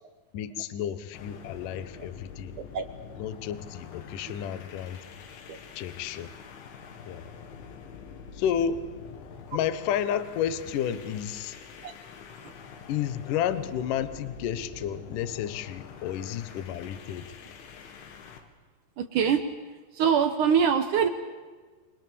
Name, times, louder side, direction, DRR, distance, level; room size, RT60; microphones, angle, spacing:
voice 1, 0.3-2.5 3.2-5.0 5.7-6.3 7.0-7.2 8.3-8.9 9.5-11.6 12.9-17.4, left 9 dB, 70° left, 12 dB, 2.1 m, -31 dB
sound 1, 1.1-18.5, left 6 dB, 85° left, 4.4 m, -46 dB
voice 2, 19.0-19.4 19.9-21.1, right 7 dB, 70° right, 7 dB, 2.0 m, -24 dB
28.0 x 23.0 x 6.9 m, 1.4 s
omnidirectional pair, 5.2 m